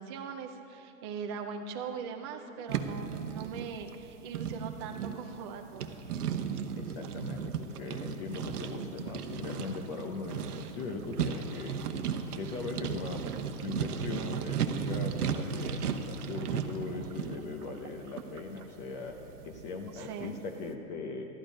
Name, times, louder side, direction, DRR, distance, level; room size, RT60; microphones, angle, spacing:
voice 1, 0.0-6.2 19.9-20.3, right 6 dB, 20° right, 4 dB, 0.4 m, -41 dB
sound 1, 2.7-20.3, right 7 dB, 90° right, 0.9 m, -36 dB
voice 2, 6.8-11.8 12.3-13.3 13.6-19.2 19.4-21.3, left 4 dB, 30° left, 3 dB, 0.7 m, -40 dB
12.5 x 11.5 x 5.0 m, 2.9 s
hypercardioid pair, 150°, 44 cm